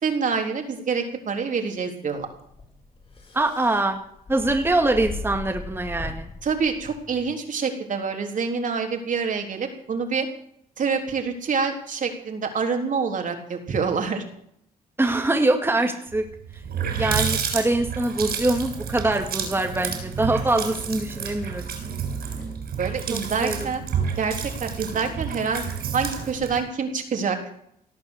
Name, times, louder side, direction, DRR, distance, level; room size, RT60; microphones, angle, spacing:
voice 1, 0.0-2.3 6.4-10.3 10.8-14.2 22.8-23.8 24.2-25.6 25.9-27.4, right 5 dB, 55° right, 4 dB, 3.7 m, -26 dB
sound 1, 2.2-7.3, left 2 dB, 35° left, 5.1 m, -38 dB
voice 2, 3.3-4.0 4.3-6.3 15.0-16.3 16.9-21.7 23.1-23.7, right 2 dB, 15° right, 4 dB, 2.1 m, -23 dB
Water tap faucet, 16.2-16.3 16.5-26.6, right 7 dB, 75° right, 7.0 m, -30 dB
18.0 x 9.6 x 8.2 m, 0.69 s
cardioid pair, 85°, 16 cm